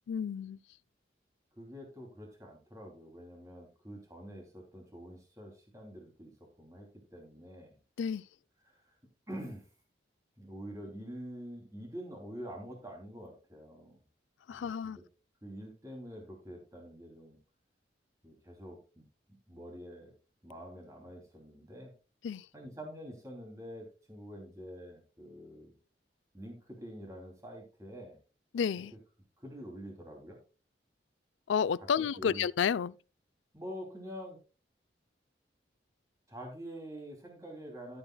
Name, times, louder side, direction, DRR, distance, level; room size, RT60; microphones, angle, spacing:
voice 1, 0.1-0.6 8.0-8.2 14.5-15.0 22.2-22.5 28.5-28.9 31.5-32.9, left 7 dB, 90° left, 0.4 m, -31 dB
voice 2, 1.6-7.8 8.6-9.0 9.3-9.7 10.4-14.0 14.5-15.0 15.4-17.4 18.2-19.0 19.5-20.1 20.4-21.9 22.5-25.7 26.3-28.2 29.4-30.4 32.0-32.5 33.5-34.4 36.3-38.0, equal, 15° right, 2.8 m, -46 dB
14.5 x 7.8 x 2.3 m
head